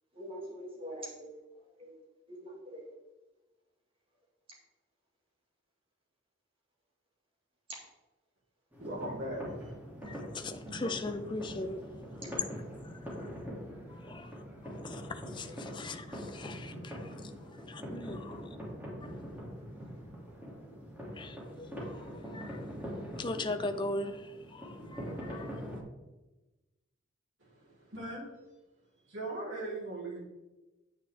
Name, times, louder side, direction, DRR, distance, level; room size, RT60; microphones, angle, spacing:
voice 1, 0.1-1.4 1.8-1.9 2.3-2.9 12.2-12.4 15.5-15.6, equal, 30° right, 1.9 m, -44 dB
sound 1, 8.7-25.8, equal, 10° right, 2.5 m, -43 dB
voice 2, 8.8-9.7 27.4-28.3 29.1-30.2, right 1 dB, 80° right, 3.7 m, -39 dB
voice 3, 10.1-11.8 14.0-14.3 14.6-17.0 17.7-18.4 21.2-22.6 23.2-24.2 24.5-25.5, left 2 dB, 25° left, 0.6 m, -39 dB
9.4 x 8.8 x 3.5 m
head